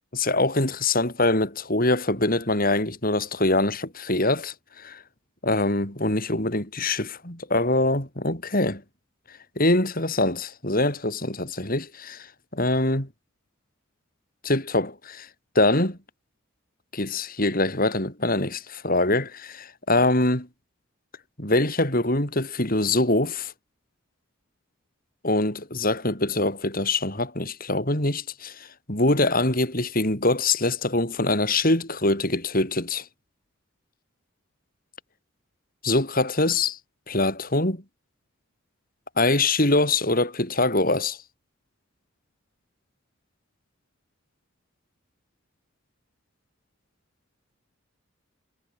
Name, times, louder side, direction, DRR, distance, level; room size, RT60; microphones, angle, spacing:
voice 1, 0.1-5.0 5.4-8.8 9.6-12.3 12.5-13.1 14.4-15.3 15.5-16.0 16.9-20.5 21.4-23.5 25.2-33.1 35.8-36.8 37.1-37.8 39.2-41.2, left 2 dB, 45° left, 6.0 m, -24 dB
head